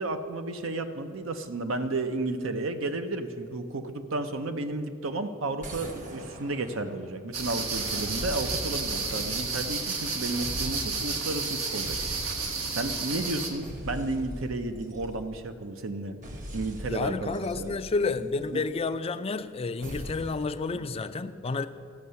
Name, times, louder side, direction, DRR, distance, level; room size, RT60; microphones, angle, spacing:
voice 1, 0.0-12.0 12.7-16.2 16.5-17.8 18.5-18.6 20.7-20.8, right 2 dB, 65° right, 8 dB, 0.7 m, -32 dB
sound 1, 5.6-7.2 7.7-10.1 10.4-11.3 11.8-12.9 13.6-15.5 16.2-18.6 19.8-20.6, equal, 40° right, 1.1 m, -41 dB
sound 2, 7.3-13.5, right 4 dB, 90° right, 1.4 m, -31 dB
voice 2, 16.8-21.7, left 4 dB, 30° left, 11 dB, 0.4 m, -30 dB
14.0 x 6.3 x 6.9 m, 2.3 s
head